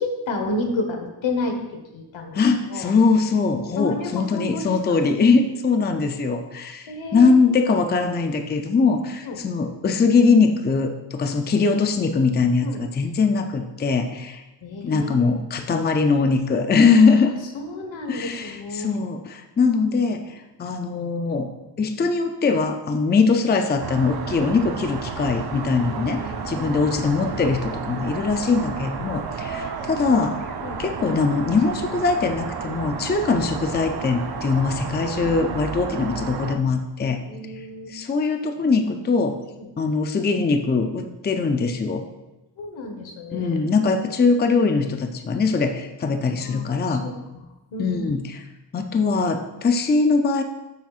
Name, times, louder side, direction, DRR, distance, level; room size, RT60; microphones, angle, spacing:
voice 1, 0.0-1.5 1.9-2.4 2.7-2.9 3.8-5.0 6.9-7.4 9.2-9.4 11.2-11.4 12.6-12.8 14.6-15.4 17.5-19.0 25.8-26.7 30.6-30.8 37.3-37.9 39.6-39.7 42.6-43.5 46.1-46.6 46.9-47.4 47.7-48.0, left 2 dB, 85° left, 4 dB, 1.3 m, -31 dB
voice 2, 2.3-14.4 14.8-17.3 18.1-21.5 21.8-30.5 30.8-37.2 37.9-39.4 39.8-42.0 43.3-47.1 47.8-48.4 48.7-50.4, left 4 dB, 25° left, 6 dB, 0.4 m, -21 dB
sound 1, 23.8-36.6, right 5 dB, 55° right, 0.7 m, -32 dB
9.1 x 7.4 x 2.4 m, 1.0 s
wide cardioid pair, 145°, 45 cm